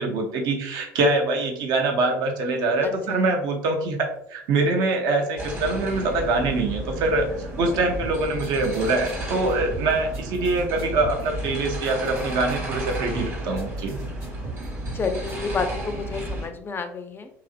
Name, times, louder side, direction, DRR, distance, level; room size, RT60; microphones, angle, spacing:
voice 1, 0.0-14.0, right 2 dB, 65° right, 3 dB, 0.6 m, -24 dB
voice 2, 2.8-3.3 14.9-17.3, left 4 dB, 30° left, 8 dB, 0.4 m, -30 dB
sound 1, 5.4-16.5, right 1 dB, 30° right, 1.1 m, -33 dB
sound 2, 8.0-15.3, right 2 dB, 85° right, 1.1 m, -39 dB
2.8 x 2.5 x 2.4 m, 0.77 s
hypercardioid pair, 70°, 8 cm